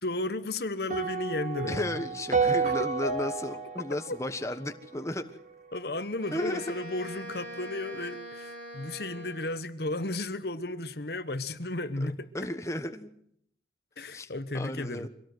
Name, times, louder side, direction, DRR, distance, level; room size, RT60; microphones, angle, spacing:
voice 1, 0.0-2.0 2.6-2.7 4.1-4.2 5.7-12.3 14.0-15.1, left 2 dB, 60° left, 1.2 m, -34 dB
sound 1, 0.9-5.2, right 5 dB, 45° right, 3.3 m, -30 dB
voice 2, 1.7-5.2 6.3-6.6 12.0-12.1 12.3-13.1 14.1-15.1, left 1 dB, 15° left, 1.3 m, -34 dB
Wind instrument woodwind instrument, 6.2-9.7, equal, 70° right, 5.6 m, -43 dB
24.5 x 18.0 x 7.9 m
head